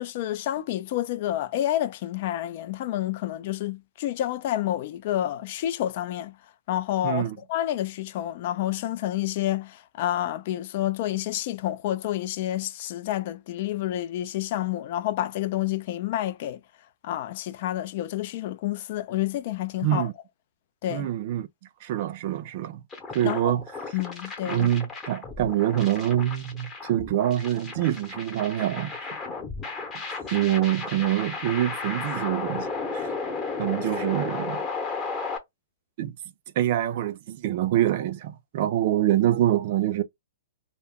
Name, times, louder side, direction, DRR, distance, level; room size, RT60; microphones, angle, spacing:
voice 1, 0.0-6.4 6.7-16.6 17.0-20.1 20.8-21.1 23.2-23.5 23.9-24.7, left 13 dB, 45° left, 0.4 m, -29 dB
voice 2, 7.0-7.4 19.8-20.1 20.9-21.5 21.8-22.8 23.1-23.6 24.5-28.9 30.3-32.7 32.9-33.1 33.6-34.6 36.0-36.2 36.6-40.0, right 12 dB, 45° right, 0.4 m, -25 dB
sound 1, 22.9-35.4, left 4 dB, 15° left, 0.8 m, -34 dB
2.2 x 2.0 x 3.5 m
hypercardioid pair, 150°, 0 cm